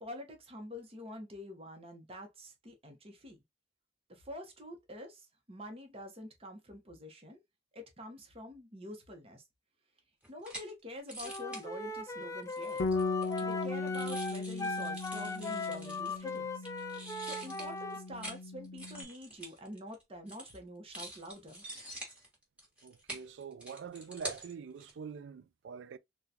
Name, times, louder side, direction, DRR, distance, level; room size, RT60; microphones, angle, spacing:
voice 1, 0.0-3.4 4.1-7.4 7.7-9.4 10.3-12.8 13.4-16.7 17.2-21.6, left 1 dB, 30° right, 0.9 m, -47 dB
sound 1, 10.2-10.7 11.1-11.7 12.4-16.4 16.7-18.4 18.6-20.0 20.3-20.6 20.9-24.5 24.8-24.9, right 1 dB, 10° right, 1.3 m, -46 dB
Wind instrument woodwind instrument, 11.2-18.0, left 3 dB, 15° left, 0.3 m, -39 dB
Bass guitar, 12.8-19.0, left 3 dB, 75° left, 0.5 m, -38 dB
voice 2, 22.8-26.0, right 6 dB, 70° right, 0.3 m, -45 dB
3.7 x 2.3 x 2.7 m
head